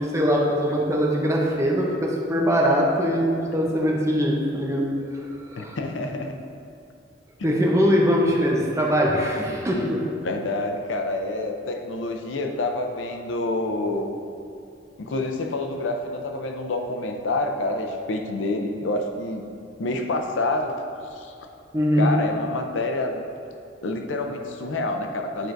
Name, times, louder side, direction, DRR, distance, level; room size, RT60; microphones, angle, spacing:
voice 1, 0.0-5.8 7.4-10.0 21.7-22.1, equal, 15° right, -2 dB, 0.7 m, -22 dB
voice 2, 5.6-6.4 10.2-14.1 15.0-19.5 19.8-20.7 21.1-21.3 22.0-23.2 23.8-25.5, left 2 dB, 80° left, 4 dB, 0.6 m, -27 dB
9.2 x 4.6 x 2.6 m, 2.5 s
head